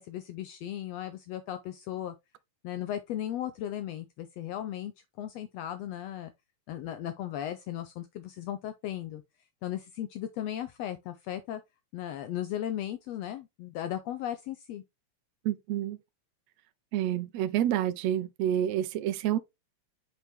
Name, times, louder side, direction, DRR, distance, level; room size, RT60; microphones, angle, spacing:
voice 1, 0.0-2.1 2.6-4.9 5.2-6.3 6.7-9.2 9.6-11.6 11.9-14.8, left 11 dB, 75° left, 1.6 m, -36 dB
voice 2, 15.5-16.0 16.9-19.4, right 11 dB, 75° right, 1.9 m, -28 dB
6.1 x 5.5 x 3.4 m
omnidirectional pair, 3.4 m